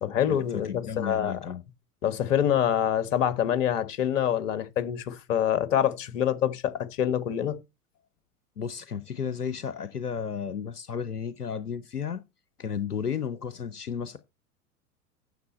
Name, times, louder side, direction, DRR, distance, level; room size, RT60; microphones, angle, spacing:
voice 1, 0.0-1.4 2.0-7.6, left 10 dB, 55° left, 1.4 m, -26 dB
voice 2, 0.6-1.6 8.6-12.2 12.6-14.2, left 7 dB, 85° left, 0.8 m, -33 dB
9.5 x 6.7 x 4.2 m
figure-of-eight pair, 90°, 45 cm